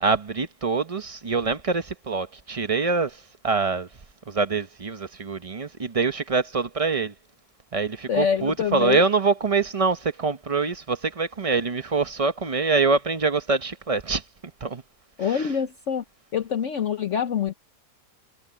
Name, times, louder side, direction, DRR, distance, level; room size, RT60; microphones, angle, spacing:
voice 1, 0.0-3.9 4.3-7.1 7.7-14.2 14.6-14.8 15.2-15.5, right 4 dB, 30° right, 0.6 m, -25 dB
voice 2, 8.1-9.0 15.2-16.0 16.3-17.5, left 7 dB, 55° left, 1.1 m, -25 dB
omnidirectional pair, 1.7 m